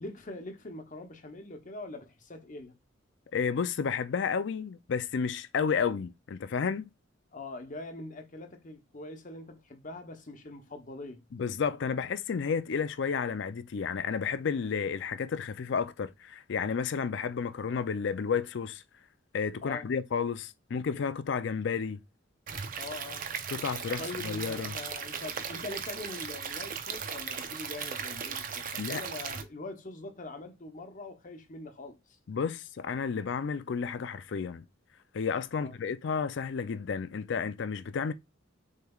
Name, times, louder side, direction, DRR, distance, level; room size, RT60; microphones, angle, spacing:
voice 1, 0.0-2.8 7.3-11.2 19.6-19.9 22.8-23.3 24.0-32.2 35.6-35.8, left 2 dB, 40° left, 0.9 m, -43 dB
voice 2, 3.3-6.9 11.3-18.8 19.3-22.0 23.5-24.7 28.8-29.0 32.3-34.6 35.1-38.1, left 6 dB, 60° left, 0.4 m, -31 dB
Stream / Liquid, 22.5-29.4, right 6 dB, 45° right, 0.6 m, -37 dB
6.6 x 3.2 x 2.3 m
head